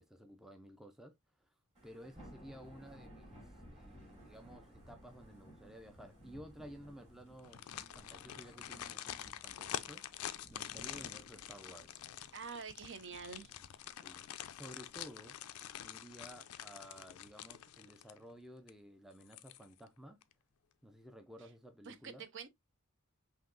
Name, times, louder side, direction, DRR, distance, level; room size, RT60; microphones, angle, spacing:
voice 1, 0.0-1.5 1.8-7.6 7.9-10.0 10.5-12.0 14.0-15.4 15.8-20.2 20.8-22.3, equal, ahead, 0.4 m, -54 dB
Thunder / Rain, 1.7-15.7, equal, 30° right, 3.1 m, -59 dB
sound 1, 7.4-18.3 18.7-18.8 19.2-19.9 20.2-20.3, left 11 dB, 90° left, 0.4 m, -47 dB
voice 2, 12.3-13.5 21.9-22.5, right 5 dB, 55° right, 0.6 m, -46 dB
5.7 x 2.8 x 2.5 m
head